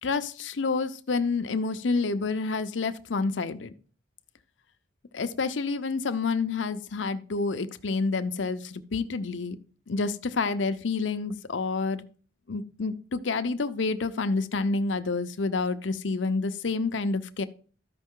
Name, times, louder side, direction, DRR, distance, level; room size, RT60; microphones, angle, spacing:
voice 1, 0.0-3.7 5.1-9.6 9.9-12.0 12.5-17.5, left 4 dB, 90° left, 11 dB, 0.7 m, -28 dB
13.5 x 5.4 x 3.7 m, 0.41 s
head